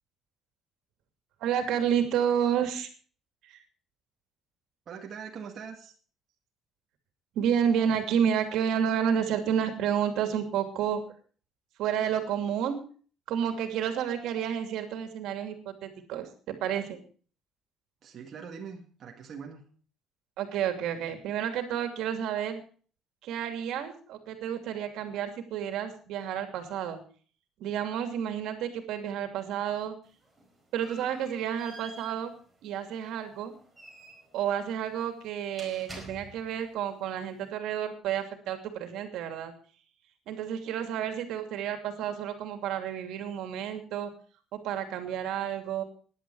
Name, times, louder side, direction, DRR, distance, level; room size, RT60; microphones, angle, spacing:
voice 1, 1.4-2.9 3.4-3.6 7.3-11.0 11.8-12.8 13.3-17.0 20.4-22.6 23.2-27.0 27.6-30.0 30.7-32.3 32.6-33.5 34.3-39.5 40.3-44.1 44.5-45.8, right 8 dB, 70° right, 7 dB, 2.7 m, -30 dB
voice 2, 4.9-5.9 18.0-19.6, right 6 dB, 40° right, 1 dB, 2.0 m, -42 dB
sound 1, 30.0-36.7, right 1 dB, 5° right, 4.8 m, -50 dB
16.5 x 10.5 x 4.8 m, 0.41 s
cardioid pair, 165°, 0 cm